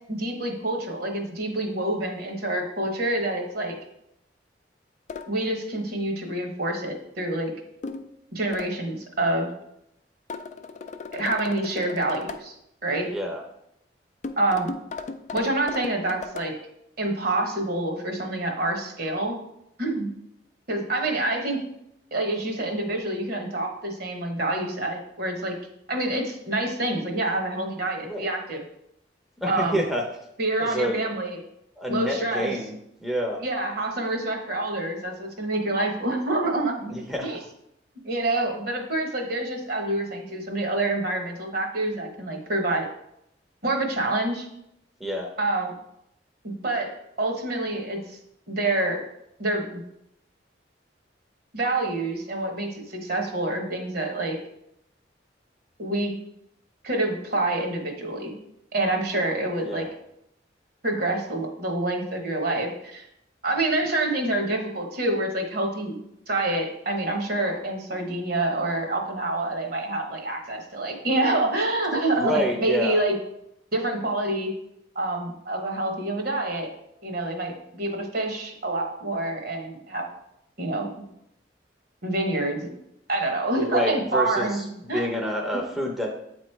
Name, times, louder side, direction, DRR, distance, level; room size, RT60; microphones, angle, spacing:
voice 1, 0.1-3.8 5.3-7.5 8.3-9.5 11.1-12.5 12.8-13.1 14.4-14.7 15.3-16.5 17.0-19.4 19.8-20.1 20.7-21.6 22.1-25.6 25.9-28.6 29.5-29.8 30.4-31.4 31.9-32.5 33.4-37.4 38.0-42.9 43.6-44.5 45.4-45.8 46.4-48.2 48.5-49.0 49.4-49.8 51.5-54.4 55.8-56.1 56.8-58.3 58.7-59.8 60.8-63.1 63.4-65.9 66.3-73.1 73.7-74.5 74.9-76.7 77.0-80.1 80.6-80.9 82.0-82.7 83.1-84.6 84.9-85.2, right 2 dB, 55° right, 2 dB, 1.1 m, -27 dB
sound 1, 5.1-5.3 7.8-8.1 8.5-8.7 10.3-12.4 14.2-16.5, left 4 dB, 40° left, 0.4 m, -36 dB
voice 2, 13.1-13.4 28.0-28.3 29.4-30.0 30.6-31.0 31.8-33.4 36.9-37.4 45.0-45.3 59.6-59.9 72.2-73.0 83.6-84.7 84.9-86.1, equal, ahead, -1 dB, 0.7 m, -28 dB
8.2 x 3.1 x 4.4 m, 0.78 s
head